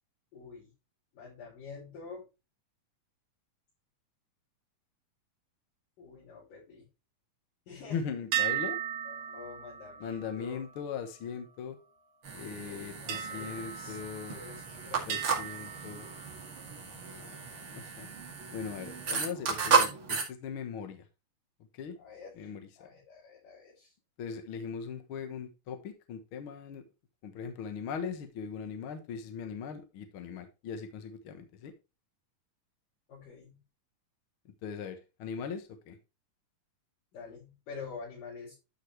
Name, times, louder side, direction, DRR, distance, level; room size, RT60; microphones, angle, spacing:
voice 1, 0.3-0.7 1.1-2.3 6.0-6.8 7.7-8.0 9.0-10.6 12.6-14.0 14.3-15.2 21.9-23.9 33.1-33.6 37.1-38.5, left 4 dB, 90° left, -9 dB, 6.9 m, -47 dB
voice 2, 7.9-8.8 10.0-11.8 12.3-14.4 15.1-16.1 17.1-18.1 18.5-21.0 21.7-21.9 22.4-22.7 24.2-26.8 27.2-31.7 34.6-36.0, left 6 dB, 55° left, 7 dB, 1.6 m, -39 dB
sound 1, 8.3-12.0 13.1-14.6 15.1-16.8, right 10 dB, 70° right, 2.7 m, -37 dB
sound 2, 12.2-20.2, right 5 dB, 45° right, 2.7 m, -33 dB
12.5 x 5.5 x 3.3 m, 0.28 s
omnidirectional pair, 3.7 m